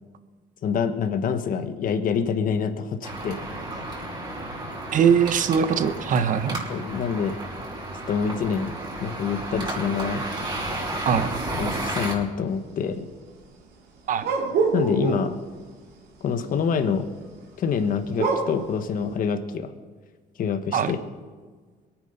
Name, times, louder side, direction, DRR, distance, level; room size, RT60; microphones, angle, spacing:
voice 1, 0.6-3.5 6.7-7.4 8.1-10.2 11.6-13.1 14.7-15.4 16.2-17.1 17.6-19.7 20.4-21.0, left 6 dB, 55° left, 8 dB, 1.3 m, -26 dB
sound 1, 3.0-12.1, right 1 dB, 25° right, 5.5 m, -32 dB
voice 2, 4.9-6.6 11.0-11.3 14.1-14.3 20.7-20.9, right 7 dB, 50° right, 11 dB, 1.0 m, -21 dB
sound 2, 14.2-15.4 18.1-18.7, right 5 dB, 70° right, 3.0 m, -24 dB
23.0 x 9.2 x 5.6 m, 1.5 s
cardioid pair, 110°, 17 cm